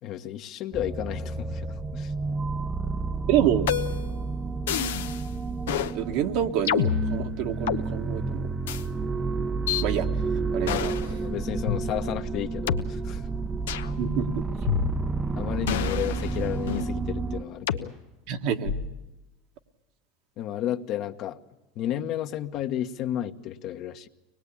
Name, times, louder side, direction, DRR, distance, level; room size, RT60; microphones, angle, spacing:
voice 1, 0.0-2.1 10.6-13.2 15.3-18.0 20.4-21.4 21.7-24.1, left 11 dB, 55° left, 6 dB, 1.3 m, -32 dB
sound 1, 0.7-17.4, right 4 dB, 20° right, 0.7 m, -30 dB
voice 2, 3.3-3.7 5.9-8.5 9.8-10.1 10.5-10.9 14.0-14.3 18.3-18.7, right 10 dB, 65° right, 4 dB, 1.8 m, -27 dB
sound 2, 3.7-4.1 4.7-5.2 5.7-5.9 6.7-7.8 8.7-8.8 9.7-9.8 10.7-11.1 11.7-11.8 12.7-12.8 13.7-13.9 14.7-15.2 15.7-16.9 17.7-17.9 18.7-19.0, left 9 dB, 85° left, 0.9 m, -28 dB
24.5 x 20.0 x 8.6 m, 1.0 s
hypercardioid pair, 100°, 0 cm